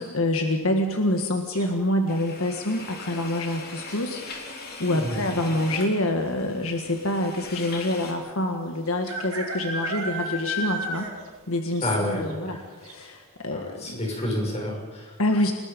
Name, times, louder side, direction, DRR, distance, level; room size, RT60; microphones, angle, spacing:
voice 1, 0.0-11.1 11.5-14.0 15.2-15.5, left 1 dB, 70° left, 4 dB, 1.7 m, -26 dB
sound 1, 1.5-2.0 3.8-4.2 4.5-4.6 4.8-5.3 6.1-6.2 6.4-6.5 8.0-8.1 9.1-11.4 11.7-11.8 12.3-12.4 12.8-12.9, right 1 dB, 70° right, 4.9 m, -32 dB
sound 2, 2.1-8.1, left 3 dB, 45° left, 3.5 m, -40 dB
voice 2, 11.8-12.6 13.5-15.2, left 1 dB, 30° left, 0 dB, 6.2 m, -29 dB
29.0 x 19.5 x 5.3 m, 1.3 s
head